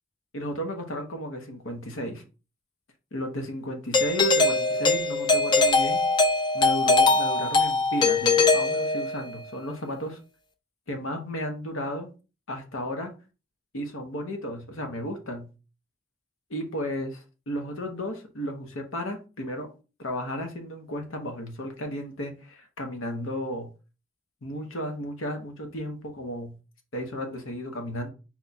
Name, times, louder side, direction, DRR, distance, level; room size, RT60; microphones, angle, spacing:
voice 1, 0.3-2.2 3.1-6.0 6.5-10.2 10.9-12.1 12.5-13.1 13.7-15.5 16.5-19.7 20.0-23.7 24.4-26.6 26.9-28.1, equal, 75° left, 5 dB, 1.0 m, -34 dB
Doorbell, 3.9-9.4, left 3 dB, 20° left, 0.4 m, -22 dB
4.4 x 2.3 x 4.1 m, 0.32 s
head